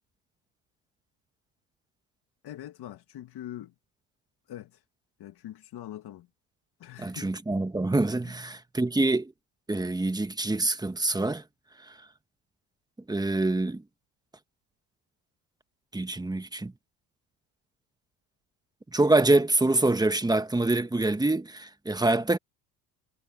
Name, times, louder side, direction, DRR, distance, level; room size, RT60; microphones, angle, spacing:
voice 1, 2.4-3.7 4.5-4.8 5.2-6.3 6.8-7.3 8.2-8.3, left 12 dB, 60° left, 2.2 m, -43 dB
voice 2, 7.0-9.3 9.7-11.4 11.9-12.0 13.1-13.8 15.9-16.7 18.9-22.4, right 2 dB, 10° right, 1.2 m, -25 dB
cardioid pair, 95°, 42 cm